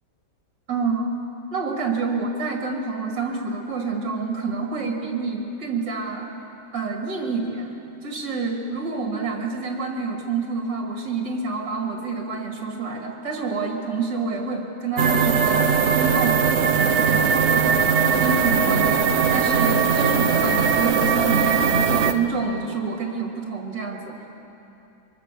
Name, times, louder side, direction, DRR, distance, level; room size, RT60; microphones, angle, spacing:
voice 1, 0.7-1.1 1.5-6.3 6.7-7.7 8.0-16.4 16.7-24.3, right 4 dB, 65° right, 1 dB, 2.8 m, -28 dB
sound 1, 15.0-22.1, right 6 dB, 45° right, 1.0 m, -20 dB
24.0 x 23.5 x 6.9 m, 2.9 s
omnidirectional pair, 2.0 m